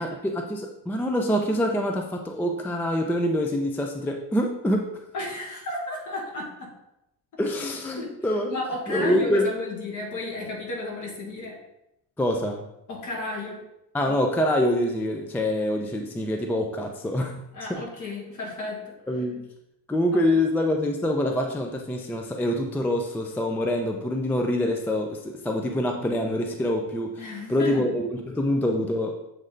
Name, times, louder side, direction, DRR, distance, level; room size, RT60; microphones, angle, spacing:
voice 1, 0.0-4.9 7.4-8.5 8.9-9.5 12.2-12.7 13.9-17.3 17.7-17.8 19.1-19.4 19.9-29.1, left 1 dB, 5° left, 3 dB, 0.3 m, -25 dB
voice 2, 5.1-6.7 8.0-8.2 8.5-11.6 12.9-13.6 17.5-18.9 27.2-27.9, left 2 dB, 50° left, -2 dB, 1.9 m, -33 dB
7.7 x 3.2 x 3.8 m, 0.84 s
cardioid pair, 140°, 37 cm